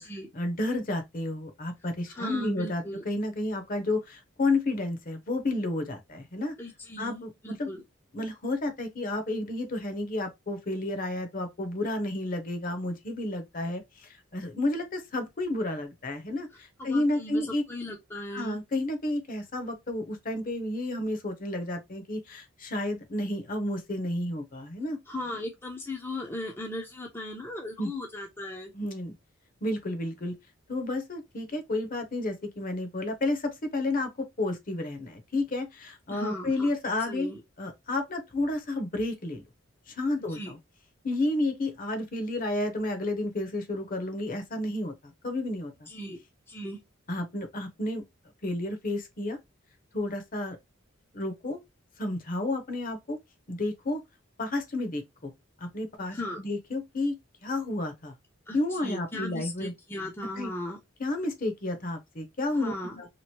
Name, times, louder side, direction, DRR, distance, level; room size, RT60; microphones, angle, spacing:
voice 1, 0.3-6.5 7.0-7.3 7.6-7.7 8.1-17.6 18.3-25.0 27.8-27.9 28.7-29.1 29.6-30.3 30.7-37.3 37.6-39.4 39.9-40.6 41.0-45.9 47.1-48.0 48.4-49.4 49.9-50.6 51.1-51.6 52.0-53.2 53.5-54.0 54.4-55.3 55.6-57.2 57.4-58.1 58.5-59.7 60.4-60.5 61.0-63.1, left 2 dB, 45° left, 0.8 m, -31 dB
voice 2, 2.1-3.0 6.6-7.8 16.8-18.6 25.1-28.7 36.1-36.7 37.0-37.4 40.3-40.5 45.9-46.2 46.5-46.8 56.1-56.4 58.5-60.8 62.5-62.9, left 1 dB, 10° left, 0.5 m, -37 dB
2.9 x 2.5 x 2.9 m
head